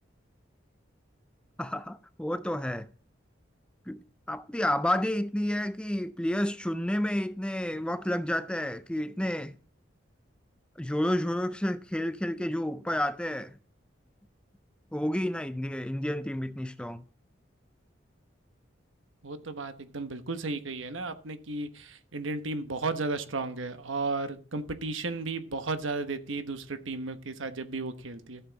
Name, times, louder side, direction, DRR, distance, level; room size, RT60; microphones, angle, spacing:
voice 1, 1.6-2.9 3.9-4.0 4.3-9.5 10.8-13.6 14.9-17.0, left 1 dB, 5° left, 0.4 m, -30 dB
voice 2, 19.2-28.4, right 3 dB, 85° right, 1.2 m, -34 dB
14.0 x 7.2 x 4.0 m
head